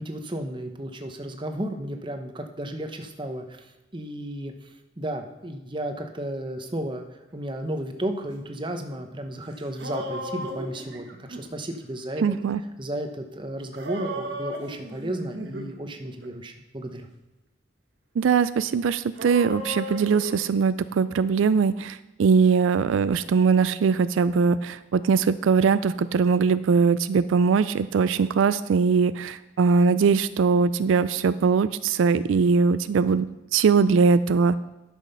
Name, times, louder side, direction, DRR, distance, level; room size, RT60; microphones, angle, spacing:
voice 1, 0.0-4.5 5.0-7.0 7.3-12.4 12.8-17.1, right 1 dB, 25° right, 5 dB, 0.9 m, -33 dB
sound 1, 9.3-9.4 9.6-11.4 13.7-15.7 16.0-16.3 19.2-20.4, equal, 65° right, 1.6 m, -35 dB
voice 2, 12.2-12.6 18.2-33.3 33.5-34.6, right 5 dB, 90° right, 14 dB, 0.4 m, -21 dB
11.0 x 6.4 x 5.4 m, 1.0 s
head